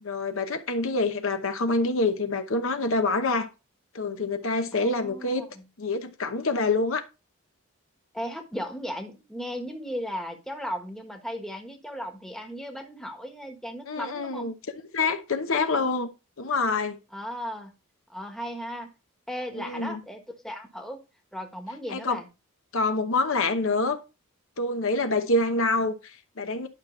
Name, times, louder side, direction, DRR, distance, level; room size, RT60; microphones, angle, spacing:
voice 1, 0.0-3.5 3.9-5.4 5.8-7.0 13.9-14.5 14.9-16.1 16.4-17.0 19.5-20.0 21.9-22.2 22.7-24.0 24.6-26.7, left 3 dB, 60° left, 0.9 m, -26 dB
voice 2, 4.7-5.6 8.1-14.5 17.1-17.7 18.1-18.9 19.3-21.0 21.3-22.3, equal, ahead, 1.3 m, -36 dB
11.0 x 6.0 x 3.1 m
head